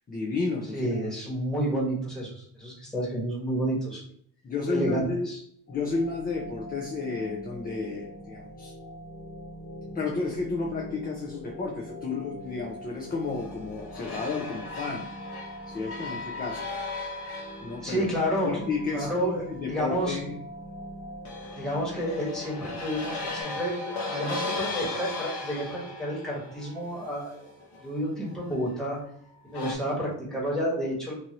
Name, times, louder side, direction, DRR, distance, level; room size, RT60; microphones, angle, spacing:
voice 1, 0.1-1.1 4.4-5.3 5.7-8.7 9.9-15.1 15.7-16.6 17.6-18.1 18.4-20.4 28.5-28.6, left 4 dB, 20° left, -1 dB, 0.4 m, -32 dB
voice 2, 0.7-4.0 4.6-5.4 17.8-18.6 18.9-20.2 21.5-27.4 27.8-29.0 29.4-31.1, equal, ahead, -6 dB, 1.2 m, -30 dB
sound 1, 5.7-23.4, equal, 40° left, 1.1 m, -43 dB
sound 2, 13.0-19.7 21.2-28.8 29.5-29.7, left 3 dB, 65° left, 0.8 m, -37 dB
2.6 x 2.6 x 2.8 m, 0.64 s
cardioid pair, 120°, 43 cm